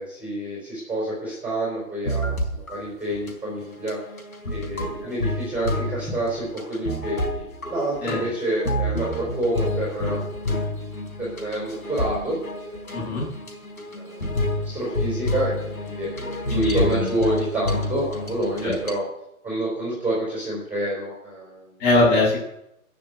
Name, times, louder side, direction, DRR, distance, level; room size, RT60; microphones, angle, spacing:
voice 1, 0.0-4.0 4.5-10.2 11.2-12.4 12.6-13.2 13.9-16.1 16.5-19.0 19.4-21.7, right 1 dB, 5° right, -5 dB, 4.1 m, -28 dB
sound 1, 2.1-2.8 3.1-3.3 3.7-19.0, left 1 dB, 75° left, 4.3 m, -29 dB
voice 2, 12.9-13.2 16.5-17.0 18.6-18.7 21.8-22.4, left 2 dB, 20° left, -3 dB, 6.8 m, -21 dB
15.5 x 6.8 x 8.1 m, 0.81 s
figure-of-eight pair, 130°, 43 cm